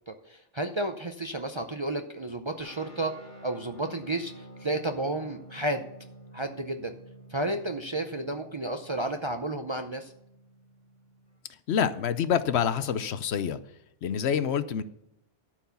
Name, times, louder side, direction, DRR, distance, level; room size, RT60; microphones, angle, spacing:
voice 1, 0.1-3.2 3.4-5.9 6.3-6.9 7.3-10.1, right 1 dB, 35° right, 6 dB, 0.5 m, -32 dB
sound 1, 2.6-11.5, right 1 dB, 40° left, 2.2 m, -50 dB
voice 2, 11.7-13.6 14.0-14.8, left 8 dB, 70° left, 13 dB, 0.8 m, -27 dB
13.0 x 4.6 x 6.8 m, 0.83 s
omnidirectional pair, 1.2 m